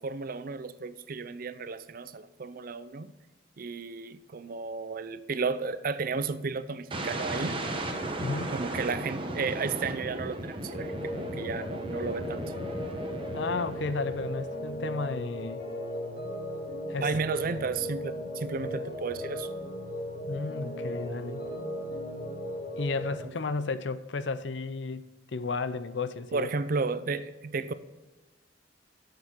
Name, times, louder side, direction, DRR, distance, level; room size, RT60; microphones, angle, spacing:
voice 1, 0.0-3.1 3.6-7.6 8.5-12.4 17.0-19.5 23.2-23.3 26.3-27.7, right 4 dB, 50° right, 0.5 m, -33 dB
sound 1, 6.9-14.8, right 1 dB, 30° right, 1.0 m, -36 dB
voice 2, 8.2-8.6 13.3-15.6 16.9-17.1 20.3-21.4 22.8-26.5, left 4 dB, 70° left, 0.6 m, -33 dB
sound 2, 10.7-23.2, left 1 dB, 55° left, 2.4 m, -37 dB
8.1 x 6.7 x 5.9 m
head